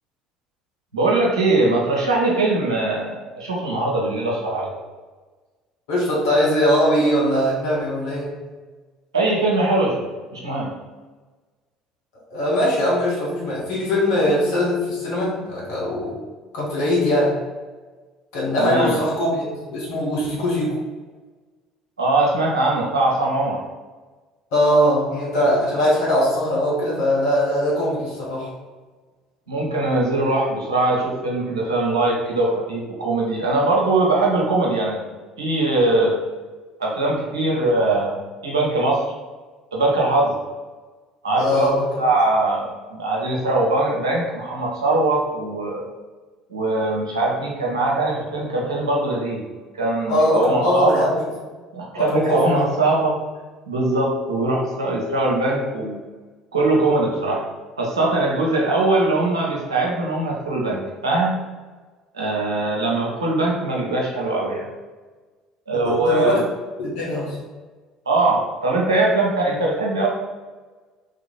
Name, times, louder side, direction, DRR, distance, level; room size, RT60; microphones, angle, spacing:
voice 1, 0.9-4.7 9.1-10.1 10.3-10.7 18.6-19.0 22.0-23.6 29.5-35.0 35.4-36.2 36.8-39.1 39.7-40.4 41.2-41.7 42.0-45.9 46.5-49.4 49.7-51.2 51.7-53.2 53.7-56.0 56.5-57.5 57.8-61.4 62.1-64.7 65.7-66.4 68.1-70.1, right 2 dB, 80° right, -3 dB, 0.8 m, -21 dB
voice 2, 5.9-8.3 12.3-16.2 16.5-17.4 18.3-20.8 24.5-28.5 41.4-41.8 50.1-51.2 52.0-52.7 65.7-66.4 66.8-67.4, equal, 65° left, -5 dB, 1.3 m, -21 dB
3.1 x 2.8 x 4.1 m, 1.3 s
figure-of-eight pair, 55°, 3 cm